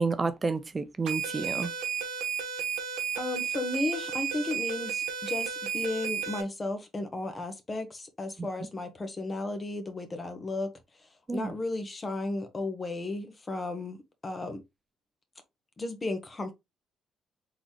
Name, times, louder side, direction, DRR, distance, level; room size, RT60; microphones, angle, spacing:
voice 1, 0.0-1.7 8.4-8.5 11.3-11.5, right 4 dB, 30° right, 0.7 m, -30 dB
sound 1, 1.1-6.4, right 6 dB, 80° right, 1.1 m, -33 dB
voice 2, 3.1-10.7 11.3-14.0 14.2-14.6 15.8-16.5, left 2 dB, 35° left, 1.3 m, -34 dB
4.0 x 3.9 x 3.0 m
hypercardioid pair, 50°, 0 cm